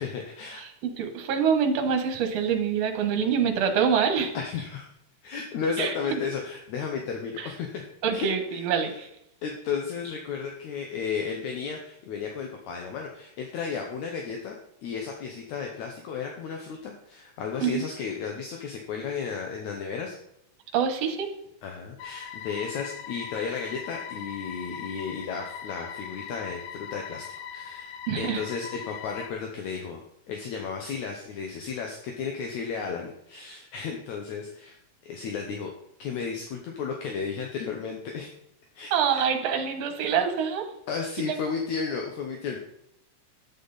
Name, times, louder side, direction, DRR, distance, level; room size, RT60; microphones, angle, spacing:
voice 1, 0.0-0.6 4.3-4.9 5.2-7.8 8.1-9.0 9.4-14.6 14.8-20.2 21.6-27.3 27.5-30.0 30.3-34.8 35.0-35.7 36.0-38.3 38.8-39.2 40.9-42.6, left 6 dB, 70° left, 2 dB, 2.3 m, -33 dB
voice 2, 0.6-4.3 5.8-6.2 7.4-7.5 8.0-9.1 17.6-17.8 20.7-21.3 28.1-28.4 38.9-40.7, right 7 dB, 60° right, 5 dB, 2.2 m, -25 dB
sound 1, 22.0-29.3, left 8 dB, 90° left, 2.3 m, -40 dB
10.0 x 9.2 x 4.1 m, 0.77 s
omnidirectional pair, 3.6 m